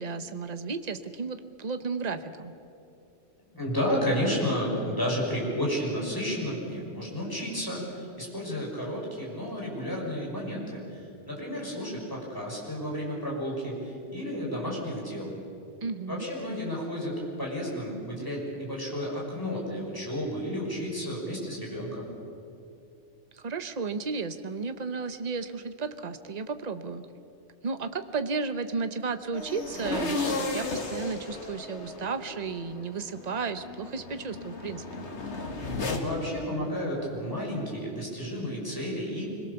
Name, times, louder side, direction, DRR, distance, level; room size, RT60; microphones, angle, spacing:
voice 1, 0.0-2.5 15.8-16.3 23.3-27.0 27.6-35.0, right 4 dB, 40° right, 9 dB, 1.0 m, -33 dB
voice 2, 3.5-10.8 11.3-15.3 16.1-22.1 35.7-39.3, equal, 20° left, -3 dB, 6.2 m, -32 dB
sound 1, 29.3-36.0, left 2 dB, 75° left, 2.2 m, -34 dB
25.5 x 22.0 x 7.0 m, 2.6 s
omnidirectional pair, 1.2 m